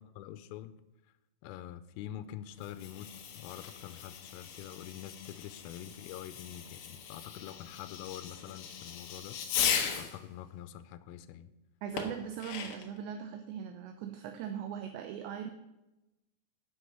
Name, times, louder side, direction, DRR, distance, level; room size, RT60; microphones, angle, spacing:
voice 1, 0.2-0.8 1.4-9.4 10.0-11.5, left 11 dB, 90° left, 12 dB, 3.2 m, -45 dB
Fireworks, 2.5-10.2 12.0-13.0, left 8 dB, 70° left, 2.4 m, -38 dB
voice 2, 11.8-15.5, right 8 dB, 80° right, 6 dB, 2.6 m, -40 dB
8.4 x 7.8 x 6.8 m, 0.97 s
omnidirectional pair, 5.7 m